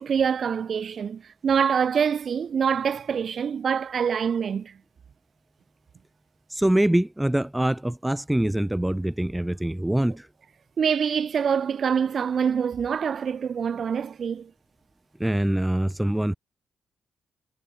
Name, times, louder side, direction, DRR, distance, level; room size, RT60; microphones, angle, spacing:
voice 1, 0.0-4.7 10.8-14.5, right 7 dB, 55° right, 3.5 m, -25 dB
voice 2, 6.5-10.3 15.2-16.3, right 1 dB, 5° right, 0.6 m, -24 dB
cardioid pair, 105°, 0 cm